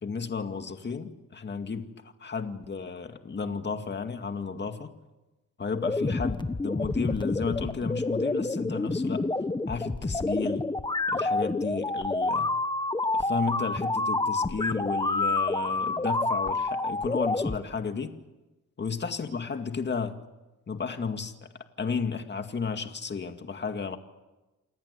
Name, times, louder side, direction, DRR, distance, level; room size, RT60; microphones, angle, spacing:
voice 1, 0.0-4.9 5.6-9.3 9.7-10.7 11.1-12.5 13.1-18.1 18.8-20.2 20.7-21.5 21.8-24.0, left 5 dB, 35° left, 7 dB, 2.2 m, -33 dB
sound 1, 5.8-17.6, left 2 dB, 15° left, 1.3 m, -28 dB
28.0 x 19.5 x 8.4 m, 1.1 s
cardioid pair, 95°, 31 cm